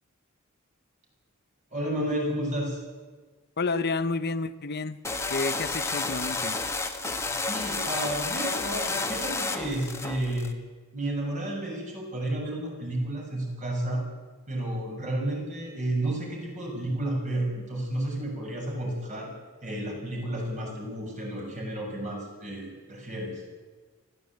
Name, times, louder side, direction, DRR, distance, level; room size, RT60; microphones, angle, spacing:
voice 1, 1.7-2.8 7.3-10.5 10.9-14.0 14.5-19.3 19.6-23.4, right 1 dB, 35° right, 0 dB, 7.0 m, -31 dB
voice 2, 3.6-5.0 5.3-6.6, left 3 dB, 50° left, 13 dB, 0.9 m, -30 dB
sound 1, 5.0-10.5, left 3 dB, 15° left, 1.6 m, -31 dB
20.0 x 15.0 x 8.8 m, 1.4 s
head